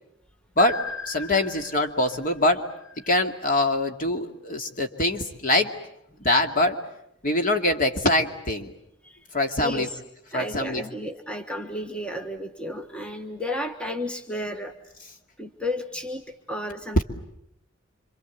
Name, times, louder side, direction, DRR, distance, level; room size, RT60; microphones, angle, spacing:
sound 1, 0.6-3.5, left 5 dB, 85° left, 2.7 m, -39 dB
voice 1, 1.1-2.6 3.1-5.7 6.2-6.8 7.2-8.7 9.3-9.9 10.3-10.8, left 1 dB, 40° left, 5 dB, 2.4 m, -23 dB
voice 2, 9.6-10.0 10.3-14.7 15.4-17.0, left 1 dB, 5° left, 5 dB, 1.3 m, -32 dB
27.5 x 26.0 x 8.2 m, 0.78 s
head